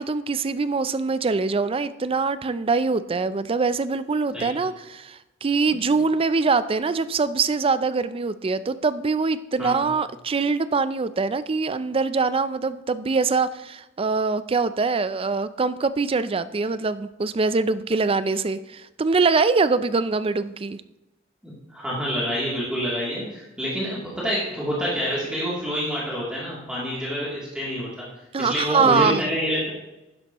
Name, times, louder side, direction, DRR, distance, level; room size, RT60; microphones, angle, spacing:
voice 1, 0.0-20.8 28.3-29.2, right 4 dB, 30° right, 14 dB, 0.4 m, -23 dB
voice 2, 21.4-27.9 28.4-29.7, equal, 5° right, -7 dB, 2.8 m, -27 dB
11.5 x 10.5 x 3.0 m, 1.0 s
head